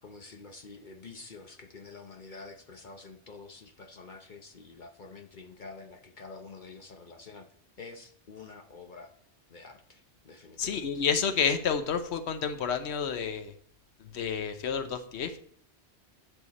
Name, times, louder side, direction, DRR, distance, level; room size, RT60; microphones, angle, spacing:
voice 1, 0.0-7.5 7.8-9.1 9.5-11.0, left 4 dB, 50° left, 5 dB, 0.9 m, -48 dB
voice 2, 10.6-13.5 14.0-15.3, left 6 dB, 80° left, 8 dB, 1.1 m, -30 dB
10.0 x 6.8 x 4.1 m, 0.63 s
omnidirectional pair, 1.1 m